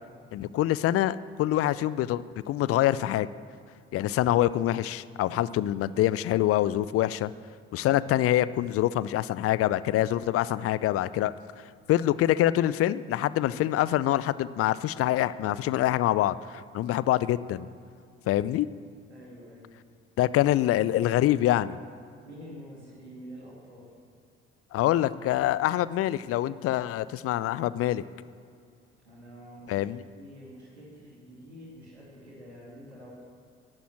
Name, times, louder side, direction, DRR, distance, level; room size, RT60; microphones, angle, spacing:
voice 1, 0.3-3.3 3.9-7.3 7.7-11.3 11.9-17.7 18.3-18.7 20.2-21.8 24.7-28.0 29.7-30.0, left 13 dB, 45° left, 18 dB, 0.6 m, -25 dB
voice 2, 19.1-19.7 20.4-21.0 22.2-23.9 29.0-29.8 30.1-33.2, equal, 85° right, -4 dB, 2.7 m, -47 dB
16.5 x 11.5 x 7.5 m, 2.3 s
figure-of-eight pair, 50°, 32 cm